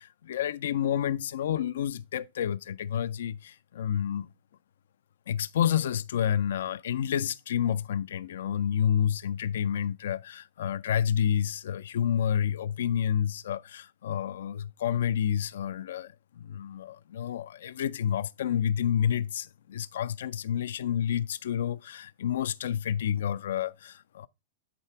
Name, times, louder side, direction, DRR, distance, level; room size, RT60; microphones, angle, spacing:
voice 1, 0.0-4.3 5.3-24.3, left 9 dB, 80° left, 0.3 m, -29 dB
8.5 x 3.3 x 4.5 m
hypercardioid pair, 130°, 0 cm